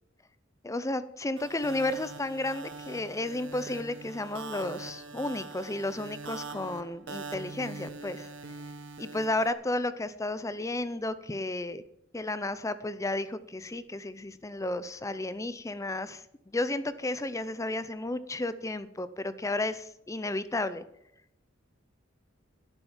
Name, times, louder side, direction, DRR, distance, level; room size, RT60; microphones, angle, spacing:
voice 1, 0.6-8.3 9.0-11.8 12.1-16.2 16.5-20.8, left 2 dB, 15° left, 14 dB, 0.5 m, -33 dB
sound 1, 1.4-9.5, right 4 dB, 70° right, 1.3 m, -43 dB
11.5 x 9.1 x 7.2 m, 0.79 s
head